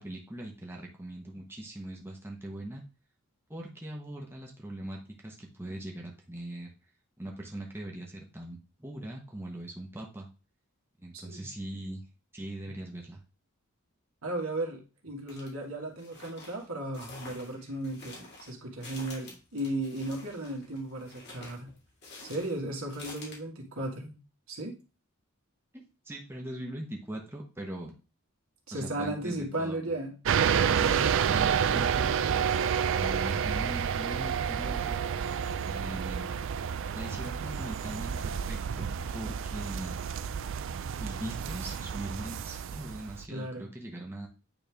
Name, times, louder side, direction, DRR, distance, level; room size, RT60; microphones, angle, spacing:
voice 1, 0.0-2.8 3.5-6.7 7.2-10.3 11.0-12.0 12.3-13.2 25.7-27.9 28.7-29.9 30.5-32.4 33.0-35.0 35.6-36.3 36.9-40.0 41.0-44.3, right 1 dB, 10° right, -1 dB, 1.1 m, -41 dB
voice 2, 11.1-11.5 14.2-21.7 22.2-24.2 24.5-24.8 28.7-30.2 31.7-32.2 43.3-43.7, right 1 dB, 80° right, 1 dB, 1.8 m, -35 dB
sound 1, 15.3-15.5 16.0-23.4, left 2 dB, 50° left, 2.2 m, -48 dB
sound 2, 30.2-43.3, right 7 dB, 60° right, 0.4 m, -29 dB
9.1 x 3.4 x 3.4 m, 0.32 s
head